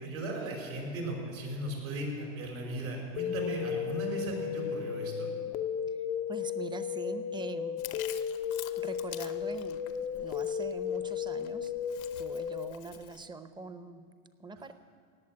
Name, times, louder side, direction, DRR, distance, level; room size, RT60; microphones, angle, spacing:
voice 1, 0.0-5.3, right 1 dB, 80° right, 0 dB, 5.0 m, -37 dB
sound 1, 3.2-12.7, left 8 dB, 20° left, 0.4 m, -34 dB
voice 2, 6.3-7.8 8.8-11.7 12.2-14.1 14.4-14.7, right 3 dB, 10° right, 11 dB, 0.7 m, -43 dB
Chewing mastication, 7.8-13.3, left 12 dB, 80° left, 1.0 m, -48 dB
17.5 x 7.3 x 8.8 m, 2.1 s
hypercardioid pair, 105°, 41 cm